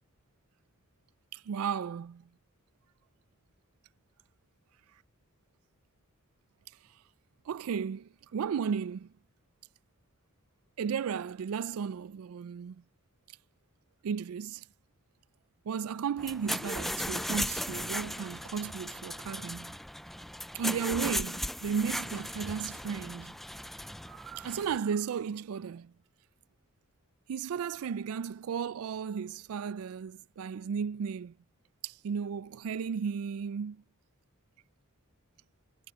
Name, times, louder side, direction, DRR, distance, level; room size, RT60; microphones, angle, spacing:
voice 1, 1.3-2.2 7.5-9.1 10.8-12.8 14.0-14.6 15.7-19.8 20.5-23.4 24.1-25.9 27.3-31.3 31.8-33.8, right 7 dB, 85° right, 0.4 m, -34 dB
sound 1, 16.2-24.8, equal, ahead, 0.3 m, -37 dB
head